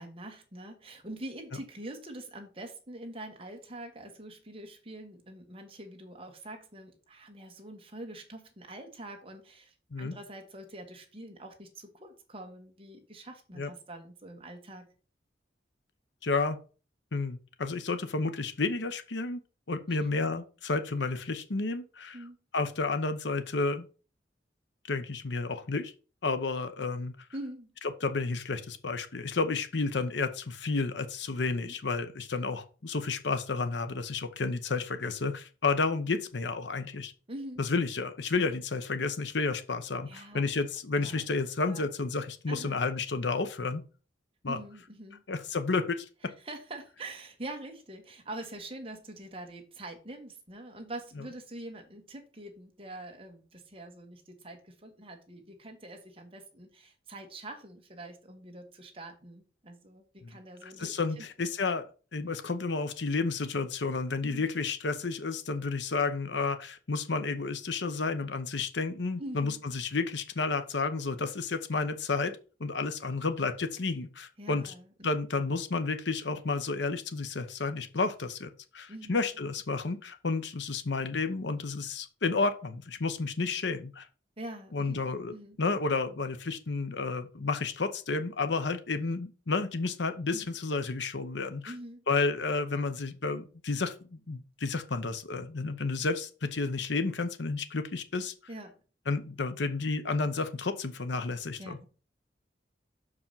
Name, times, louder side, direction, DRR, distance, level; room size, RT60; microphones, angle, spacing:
voice 1, 0.0-14.9 22.1-22.4 27.3-27.7 31.6-31.7 37.3-37.6 40.1-40.5 41.0-41.2 41.6-41.8 42.5-42.7 44.5-45.2 46.4-61.3 64.2-64.5 69.2-69.6 74.4-74.9 78.9-79.1 84.4-85.6 90.3-90.6 91.6-92.0 98.5-98.8 101.6-101.9, right 1 dB, 30° right, 4 dB, 1.4 m, -44 dB
voice 2, 16.2-16.6 17.1-19.4 19.7-22.2 22.5-23.9 24.9-25.9 26.2-27.2 28.0-37.1 37.6-43.8 44.4-44.6 45.3-46.0 60.2-61.9 62.1-74.7 75.0-84.1 84.7-91.7 92.1-98.3 99.1-101.8, left 3 dB, 80° left, 10 dB, 0.8 m, -31 dB
6.4 x 4.9 x 5.6 m, 0.35 s
head